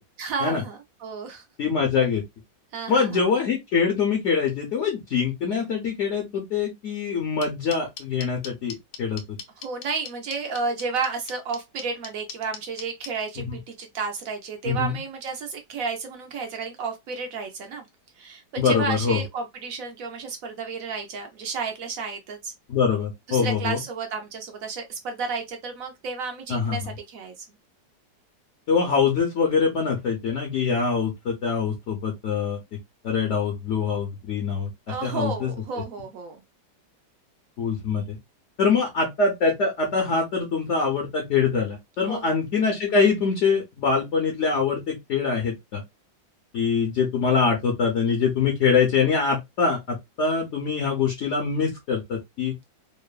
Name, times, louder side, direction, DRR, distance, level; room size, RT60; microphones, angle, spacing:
voice 1, 0.2-1.4 2.7-3.2 9.6-17.9 18.2-22.5 23.3-27.5 34.9-36.4 42.1-42.3, right 4 dB, 70° right, 0.8 m, -32 dB
voice 2, 1.6-2.2 2.9-9.2 13.4-13.6 14.6-15.0 18.6-19.2 22.7-23.8 26.5-26.9 28.7-32.6 33.0-35.5 37.6-38.2 38.6-45.8 46.5-52.5, left 5 dB, 60° left, 0.8 m, -24 dB
sound 1, 7.4-13.1, left 7 dB, 80° left, 1.3 m, -37 dB
3.0 x 2.1 x 2.3 m
omnidirectional pair, 1.9 m